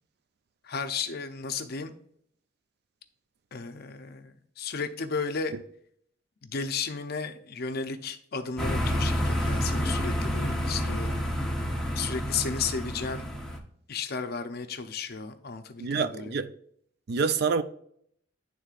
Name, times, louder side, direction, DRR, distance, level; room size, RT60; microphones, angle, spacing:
voice 1, 0.6-1.9 3.5-5.5 6.4-11.1 11.9-13.3 13.9-16.3, left 5 dB, 55° left, 0.6 m, -34 dB
sound 1, 8.6-13.6, equal, 5° left, 0.8 m, -29 dB
voice 2, 15.8-16.5 17.1-17.6, right 5 dB, 60° right, 0.4 m, -27 dB
11.0 x 3.8 x 2.4 m
head